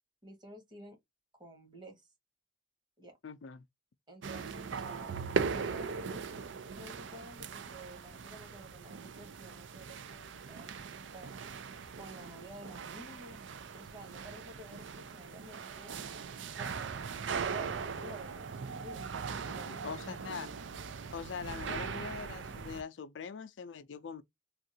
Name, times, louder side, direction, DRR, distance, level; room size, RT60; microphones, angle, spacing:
voice 1, 0.2-1.0 1.4-2.0 3.0-3.2 4.1-6.5 6.7-11.4 11.9-13.4 13.7-16.0 16.5-20.3, right 1 dB, 25° right, 1.6 m, -51 dB
voice 2, 3.2-3.6 19.5-20.5 21.1-24.2, left 6 dB, 70° left, 0.4 m, -43 dB
Church entering and leaving, 4.2-22.8, right 5 dB, 75° right, 0.5 m, -40 dB
3.6 x 2.4 x 2.7 m
head